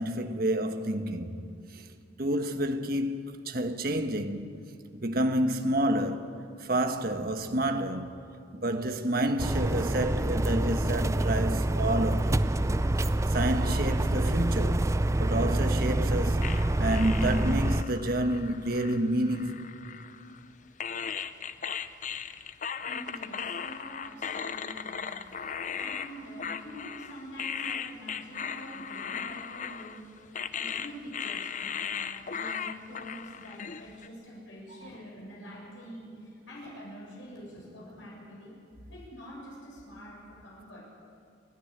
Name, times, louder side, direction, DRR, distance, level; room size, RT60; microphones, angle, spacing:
voice 1, 0.0-1.3 1.7-1.9 2.2-4.5 4.9-6.3 6.6-8.1 8.5-12.5 13.0-14.9 15.2-19.7, right 1 dB, 50° right, 1.3 m, -29 dB
sound 1, 9.4-17.8, right 1 dB, 15° right, 0.4 m, -27 dB
sound 2, 16.4-20.4 20.8-34.1, left 7 dB, 40° left, 0.6 m, -37 dB
voice 2, 22.8-25.1 25.8-38.6 38.9-40.8, equal, 80° left, 7.4 m, -46 dB
29.0 x 10.0 x 10.0 m
head